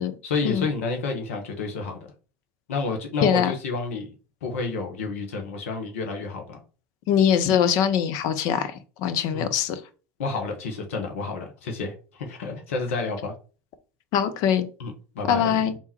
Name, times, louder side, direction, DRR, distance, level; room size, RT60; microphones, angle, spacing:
voice 1, 0.2-2.0 2.7-4.1 4.4-6.6 9.3-9.5 10.2-13.3 14.8-15.8, left 4 dB, 75° left, 1.0 m, -30 dB
voice 2, 3.2-3.5 7.1-8.7 9.0-9.8 14.1-14.7 15.3-15.7, left 8 dB, 55° left, 0.7 m, -22 dB
3.5 x 2.9 x 4.3 m
hypercardioid pair, 80°, 7 cm